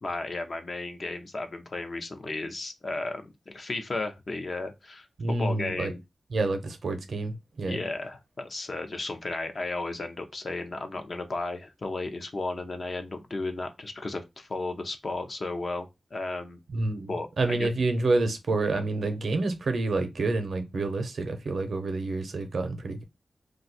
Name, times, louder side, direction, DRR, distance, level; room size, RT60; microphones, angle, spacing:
voice 1, 0.0-5.1 5.4-6.0 7.7-16.6 17.1-17.7, left 2 dB, 45° left, 0.6 m, -34 dB
voice 2, 5.2-5.9 6.3-7.8 16.7-23.0, right 2 dB, 65° right, 0.6 m, -28 dB
2.5 x 2.3 x 3.9 m
wide cardioid pair, 140°, 0 cm